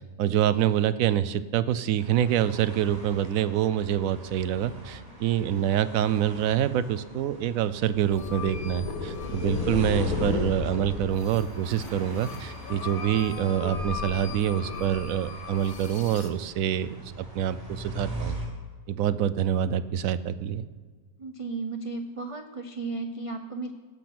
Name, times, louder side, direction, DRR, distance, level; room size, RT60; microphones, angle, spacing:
voice 1, 0.2-18.4 18.9-20.6, right 10 dB, 70° right, 15 dB, 1.0 m, -26 dB
sound 1, 2.0-18.5, equal, 25° right, 3.2 m, -41 dB
sound 2, 8.1-16.3, left 5 dB, 70° left, 1.4 m, -34 dB
voice 2, 21.2-23.7, right 3 dB, 50° right, 5 dB, 0.3 m, -34 dB
17.0 x 6.1 x 6.0 m, 1.5 s
omnidirectional pair, 1.6 m